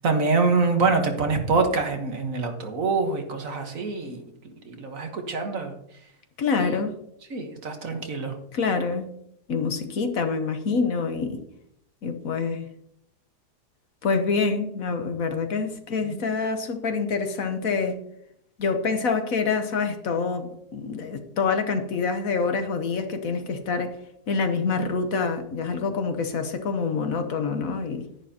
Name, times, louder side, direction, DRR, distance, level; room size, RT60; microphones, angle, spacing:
voice 1, 0.0-4.2 4.6-5.7 6.6-6.8 7.3-8.4 16.0-16.2, right 4 dB, 55° right, 1.6 m, -25 dB
voice 2, 6.4-6.9 8.5-9.1 9.5-11.4 12.0-12.7 14.0-18.0 18.6-24.0 24.3-28.0, left 4 dB, 60° left, 1.3 m, -26 dB
11.0 x 10.5 x 2.9 m
omnidirectional pair, 1.7 m